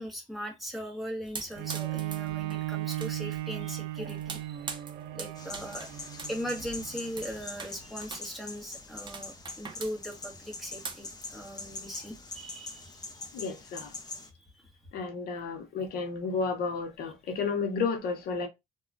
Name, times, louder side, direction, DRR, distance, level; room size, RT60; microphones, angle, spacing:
voice 1, 0.0-4.8 5.1-5.9 6.3-13.2, equal, ahead, 1.2 m, -39 dB
sound 1, 1.2-12.6, right 5 dB, 30° right, 0.6 m, -45 dB
Bowed string instrument, 1.6-7.2 7.8-7.9, right 15 dB, 75° right, 0.4 m, -36 dB
sound 2, 5.4-14.3, left 3 dB, 25° left, 0.6 m, -44 dB
voice 2, 13.3-13.9 14.9-18.5, left 4 dB, 65° left, 0.7 m, -32 dB
2.9 x 2.3 x 2.5 m
cardioid pair, 110°, 17 cm